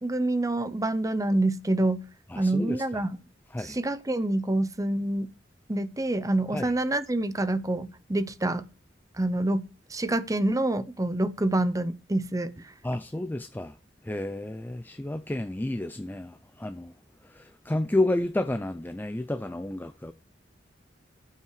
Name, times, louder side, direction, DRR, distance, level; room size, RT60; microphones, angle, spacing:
voice 1, 0.0-2.1 2.4-3.2 3.6-5.3 5.7-8.7 9.2-12.7, right 1 dB, 20° right, 0.7 m, -27 dB
voice 2, 2.3-2.8 3.5-3.8 6.5-6.7 12.8-13.8 14.0-16.9 17.2-20.1, left 1 dB, 10° left, 0.4 m, -31 dB
13.5 x 5.7 x 4.8 m
head